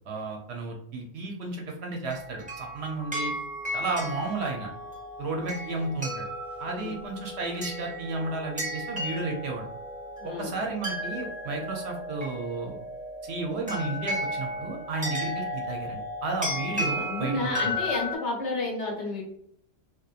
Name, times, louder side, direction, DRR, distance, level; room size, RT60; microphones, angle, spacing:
voice 1, 0.1-3.3 3.7-4.7 5.2-6.3 6.6-9.7 10.4-12.8 13.2-17.5, right 3 dB, 65° right, 1 dB, 0.7 m, -33 dB
sound 1, 2.1-18.1, left 1 dB, 10° right, 0.5 m, -34 dB
voice 2, 10.2-10.5 17.0-19.2, left 2 dB, 65° left, -2 dB, 1.1 m, -31 dB
2.9 x 2.1 x 2.3 m, 0.71 s
omnidirectional pair, 1.3 m